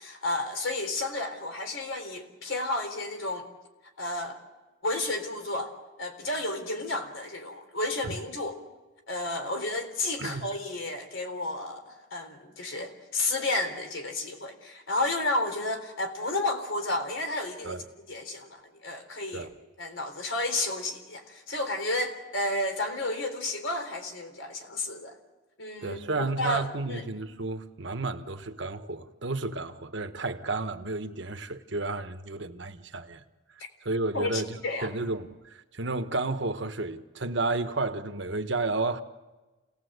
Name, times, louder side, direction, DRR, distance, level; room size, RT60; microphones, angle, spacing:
voice 1, 0.0-3.5 4.0-4.4 4.8-5.7 6.0-8.6 9.1-17.8 18.1-19.5 19.8-25.2 25.6-26.0 26.4-27.1 34.1-34.9, left 2 dB, 75° left, 3.8 m, -32 dB
voice 2, 25.8-33.2 33.8-34.6 34.8-39.0, right 3 dB, 65° right, 1.3 m, -32 dB
28.0 x 18.5 x 8.1 m
head